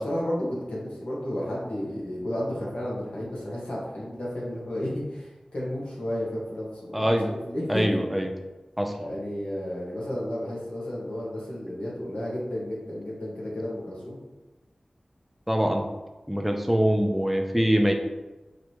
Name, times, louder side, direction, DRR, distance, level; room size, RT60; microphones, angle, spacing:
voice 1, 0.0-8.0 9.0-14.2, left 1 dB, 70° left, -5 dB, 1.5 m, -32 dB
voice 2, 6.9-7.3 7.7-8.3 8.8-8.9 15.5-15.8 16.3-17.9, equal, 5° right, 3 dB, 0.5 m, -23 dB
5.0 x 3.2 x 3.0 m, 1.1 s
wide cardioid pair, 60°, 2 cm